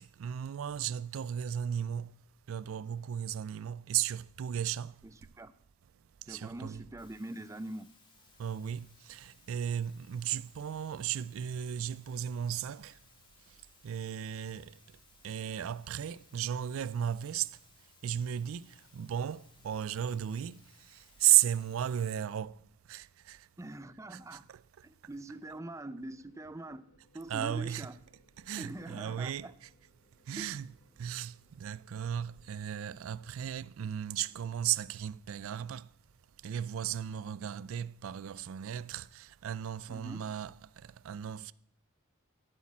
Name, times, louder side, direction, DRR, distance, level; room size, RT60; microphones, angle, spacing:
voice 1, 0.0-2.1 2.5-4.9 6.3-6.8 8.4-13.0 13.8-14.7 15.2-17.5 18.0-20.6 20.9-22.6 22.9-23.5 24.1-24.6 27.3-27.9 28.4-29.7 30.3-30.7 31.0-35.9 36.4-40.5 40.8-41.5, right 10 dB, 80° right, 0.4 m, -35 dB
voice 2, 5.0-5.5 6.3-7.9 23.6-24.4 24.8-28.0 28.6-29.5 30.4-30.6 39.9-40.2, right 1 dB, 15° right, 0.4 m, -44 dB
Water, 7.0-22.2, left 4 dB, 25° left, 2.1 m, -64 dB
sound 1, 25.5-33.5, left 1 dB, 70° left, 3.0 m, -69 dB
12.5 x 7.4 x 7.3 m
head